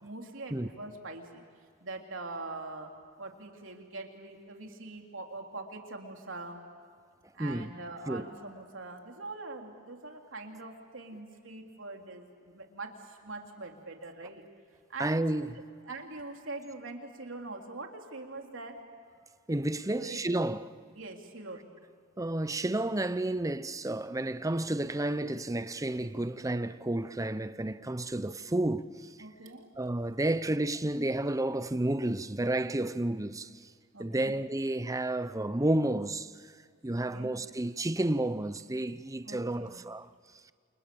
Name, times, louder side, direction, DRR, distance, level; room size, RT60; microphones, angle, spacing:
voice 1, 0.0-1.4 1.8-2.9 3.2-6.6 7.3-14.4 14.9-15.2 15.9-18.8 19.9-20.2 20.9-21.7 29.2-29.7 33.9-34.3 36.9-37.4 39.2-39.8, right 2 dB, 75° right, 3.4 m, -43 dB
voice 2, 7.4-7.7 8.1-8.3 15.0-15.7 19.5-20.8 22.2-29.1 29.8-33.5 34.0-36.3 36.8-40.1, right 1 dB, 15° right, 0.7 m, -31 dB
29.5 x 28.0 x 7.0 m
head